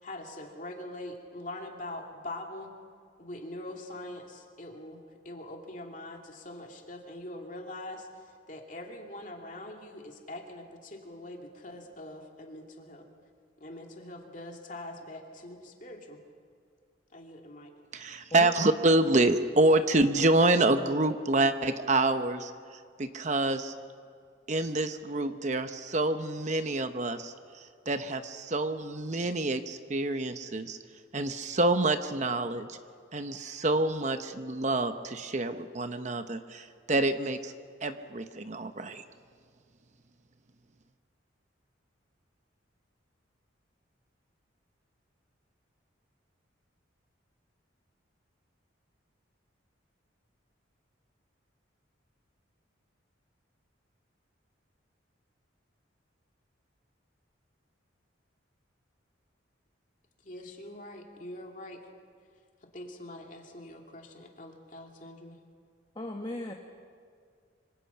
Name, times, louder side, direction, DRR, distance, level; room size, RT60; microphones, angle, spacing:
voice 1, 0.0-2.7 3.2-13.1 13.6-16.2 17.1-17.7 60.2-61.8 62.7-65.4, left 1 dB, 40° left, 1 dB, 2.6 m, -43 dB
voice 2, 17.9-22.5 23.0-23.7 24.5-30.8 31.1-32.8 33.1-37.5 37.8-39.0, right 2 dB, 35° right, 9 dB, 0.8 m, -27 dB
voice 3, 65.9-66.5, left 1 dB, 25° left, 2 dB, 1.2 m, -36 dB
25.5 x 25.0 x 5.8 m, 2.2 s
head